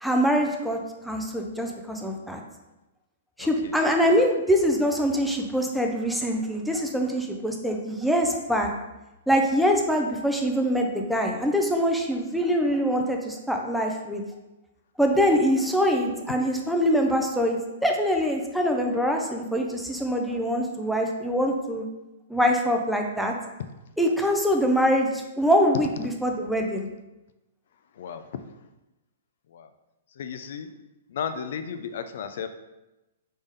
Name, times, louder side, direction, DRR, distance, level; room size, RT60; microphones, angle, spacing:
voice 1, 0.0-2.4 3.4-8.7 9.3-14.2 15.0-21.8 22.3-23.3 24.0-26.9, equal, ahead, 1 dB, 0.4 m, -24 dB
voice 2, 3.4-3.8 4.2-4.3 27.9-28.4 29.5-29.7 30.1-30.7 31.1-32.5, left 7 dB, 60° left, 9 dB, 0.4 m, -34 dB
4.0 x 3.4 x 3.6 m, 1.0 s
hypercardioid pair, 155°, 0 cm